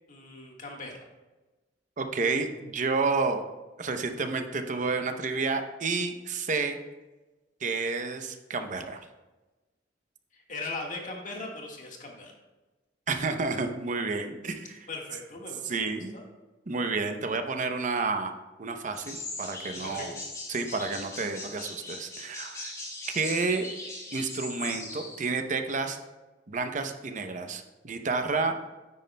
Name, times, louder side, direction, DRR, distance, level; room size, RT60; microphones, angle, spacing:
voice 1, 0.1-1.0 10.3-12.3 14.9-16.2 19.8-20.1, left 3 dB, 45° left, 0 dB, 1.6 m, -39 dB
voice 2, 2.0-3.4 3.8-6.8 7.6-9.0 13.1-14.9 15.7-16.1 16.7-18.3 18.6-20.1 20.5-22.7 23.1-23.7 24.1-26.0 26.5-28.6, right 4 dB, 45° right, 7 dB, 0.7 m, -30 dB
sound 1, 18.9-25.2, left 2 dB, 15° left, 1.4 m, -40 dB
9.5 x 9.1 x 2.2 m, 1.2 s
head